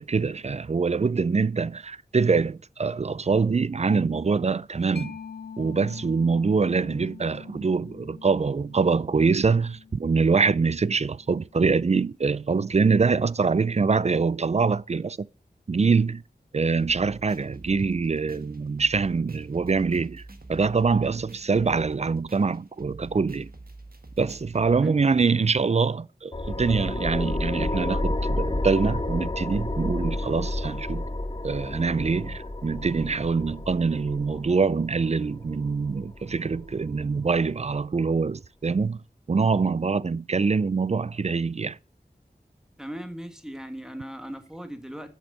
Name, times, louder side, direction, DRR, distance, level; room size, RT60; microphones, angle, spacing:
voice 1, 0.0-5.1 5.6-15.3 15.7-16.2 16.5-20.2 20.5-23.5 24.2-31.0 31.4-39.0 39.3-41.8, right 4 dB, 40° right, 0.4 m, -24 dB
Mallet percussion, 5.0-12.2, left 6 dB, 85° left, 0.6 m, -45 dB
sound 1, 16.8-24.8, right 2 dB, 60° right, 1.5 m, -46 dB
sound 2, 26.3-37.4, left 1 dB, 25° left, 0.9 m, -31 dB
voice 2, 42.8-45.1, equal, 5° right, 1.7 m, -38 dB
8.0 x 6.5 x 5.4 m
wide cardioid pair, 45°, 17 cm